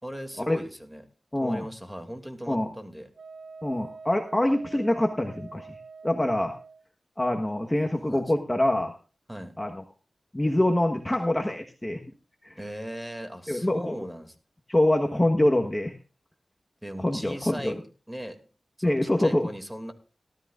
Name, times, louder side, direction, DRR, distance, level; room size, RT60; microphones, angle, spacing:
voice 1, 0.0-1.1 1.4-3.1 7.9-8.2 9.3-9.6 12.6-14.4 16.8-17.8 18.1-18.4 18.8-19.9, equal, 5° right, 6 dB, 2.5 m, -38 dB
voice 2, 1.3-1.7 2.5-2.7 3.6-5.8 6.0-6.5 7.2-8.9 9.6-9.8 10.3-12.0 12.4-12.6 13.5-14.0 14.7-16.0 17.0-17.7 18.8-19.5, left 1 dB, 20° left, 3 dB, 1.3 m, -25 dB
Wind instrument woodwind instrument, 3.2-6.8, right 4 dB, 70° right, 2.4 m, -45 dB
18.0 x 13.0 x 2.5 m, 0.34 s
cardioid pair, 60°, 0 cm